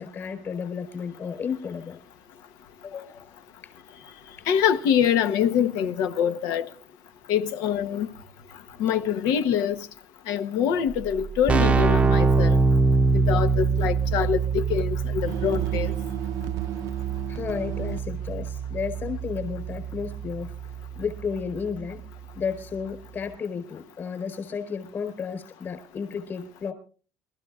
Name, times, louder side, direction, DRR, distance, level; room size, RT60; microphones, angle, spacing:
voice 1, 0.0-2.0 2.8-3.3 3.6-3.7 17.3-20.5 20.9-22.1 22.3-26.7, left 6 dB, 35° left, 4.5 m, -33 dB
voice 2, 4.5-6.7 7.3-8.1 8.8-9.9 10.3-12.6 13.1-15.9, left 8 dB, 80° left, 1.1 m, -24 dB
Keyboard (musical), 10.9-11.0 11.2-21.8, right 4 dB, 20° right, 0.7 m, -25 dB
sound 1, 15.3-18.0, right 13 dB, 65° right, 0.6 m, -33 dB
28.0 x 13.5 x 2.4 m
cardioid pair, 140°, 6 cm